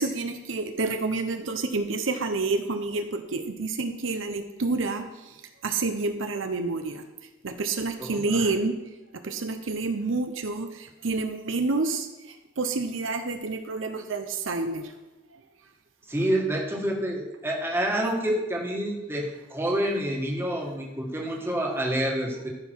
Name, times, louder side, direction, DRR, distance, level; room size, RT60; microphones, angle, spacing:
voice 1, 0.0-5.0 5.6-7.0 7.4-8.8 9.2-10.7 11.0-12.1 12.6-14.8, right 3 dB, 75° right, 7 dB, 0.8 m, -28 dB
voice 2, 8.0-8.5 16.1-22.5, right 1 dB, 10° right, 0 dB, 1.5 m, -28 dB
13.5 x 5.8 x 4.6 m, 1.1 s
head